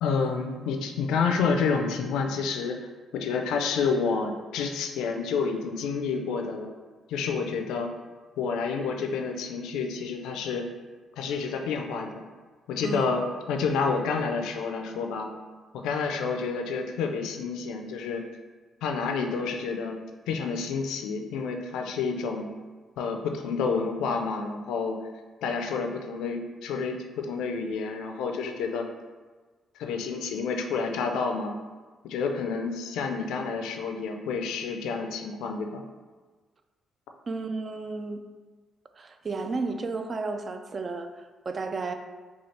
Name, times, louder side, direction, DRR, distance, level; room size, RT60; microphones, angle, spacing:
voice 1, 0.0-2.9 3.1-6.7 7.1-7.9 8.4-10.6 11.2-12.3 12.7-15.3 15.7-18.2 18.8-20.0 20.3-22.5 23.0-25.0 25.4-28.9 29.8-31.5 32.0-35.8, left 5 dB, 90° left, 4 dB, 0.4 m, -29 dB
voice 2, 12.8-13.1 37.3-38.2 39.0-42.0, right 3 dB, 40° right, 7 dB, 0.3 m, -33 dB
4.2 x 2.3 x 3.2 m, 1.4 s
cardioid pair, 90°, 0 cm